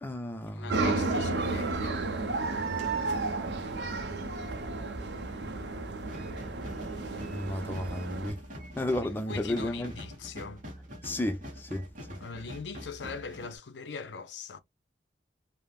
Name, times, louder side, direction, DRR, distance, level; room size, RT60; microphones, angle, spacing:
voice 1, 0.0-0.9 7.3-8.4 8.8-9.9 11.0-11.9, left 1 dB, 10° left, 0.3 m, -33 dB
voice 2, 0.5-2.1 9.3-10.6 12.2-14.6, left 5 dB, 75° left, 0.5 m, -41 dB
sound 1, 0.7-8.3, right 3 dB, 70° right, 0.6 m, -32 dB
sound 2, 6.0-13.6, equal, 45° right, 0.9 m, -45 dB
3.3 x 2.0 x 2.3 m
head